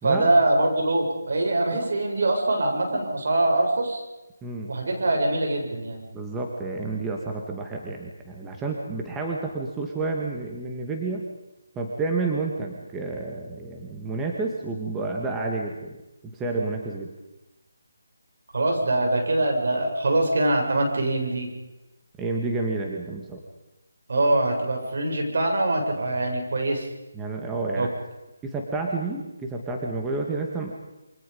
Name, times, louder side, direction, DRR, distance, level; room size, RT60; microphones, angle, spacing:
voice 1, 0.0-4.0 4.7-6.0 18.5-21.5 24.1-26.9 27.7-27.9, right 2 dB, 65° right, 1 dB, 7.9 m, -23 dB
voice 2, 4.4-4.7 6.1-11.3 11.8-15.9 16.3-17.1 22.2-23.4 27.1-27.9 28.4-30.7, right 3 dB, 10° right, 0 dB, 2.2 m, -30 dB
28.0 x 25.0 x 5.5 m, 1.0 s
figure-of-eight pair, 160°, 0 cm